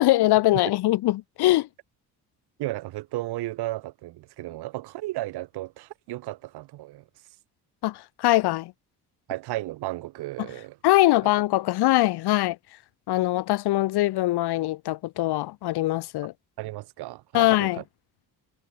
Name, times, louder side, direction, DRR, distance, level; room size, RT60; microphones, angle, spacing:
voice 1, 0.0-1.7 7.8-8.7 10.8-12.6 13.1-16.3 17.3-17.8, left 16 dB, 85° left, 2.5 m, -22 dB
voice 2, 2.6-7.0 9.3-10.8 11.2-11.3 16.6-17.8, right 17 dB, 80° right, 1.8 m, -34 dB
cardioid pair, 135°, 38 cm